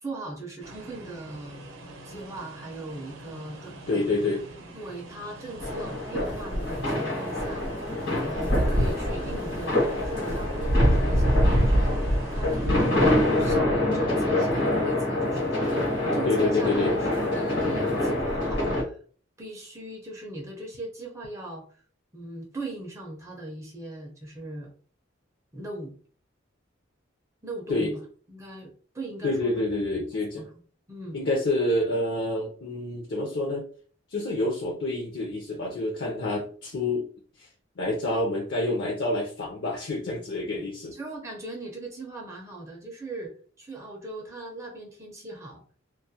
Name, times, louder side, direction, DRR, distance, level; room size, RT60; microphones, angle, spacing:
voice 1, 0.0-1.7 2.0-4.1 4.7-7.7 8.2-19.0 19.4-21.6 22.1-24.7 25.5-25.9 27.4-28.0 28.3-29.6 30.4-30.5 30.9-31.2 40.5-40.6 40.9-45.6, right 2 dB, 15° right, 0 dB, 0.4 m, -39 dB
sound 1, 0.6-13.5, right 2 dB, 80° right, 0.6 m, -45 dB
voice 2, 3.9-4.4 16.2-17.0 27.7-27.9 29.2-30.5 31.1-33.6 34.1-37.0 37.8-40.9, left 2 dB, 60° left, -1 dB, 0.5 m, -27 dB
sound 2, 5.6-18.8, left 1 dB, 75° left, 1.1 m, -24 dB
2.3 x 2.0 x 2.7 m, 0.43 s
head